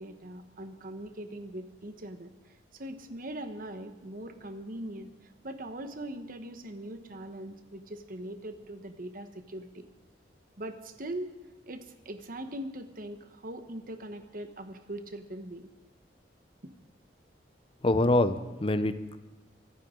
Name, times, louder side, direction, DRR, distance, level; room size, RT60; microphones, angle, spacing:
voice 1, 0.0-2.3 2.7-9.9 10.6-11.3 11.7-15.7 16.6-16.7, right 1 dB, 50° right, 8 dB, 1.2 m, -41 dB
voice 2, 17.8-19.2, left 2 dB, 30° left, 11 dB, 0.7 m, -25 dB
24.5 x 14.0 x 3.8 m, 1.1 s
head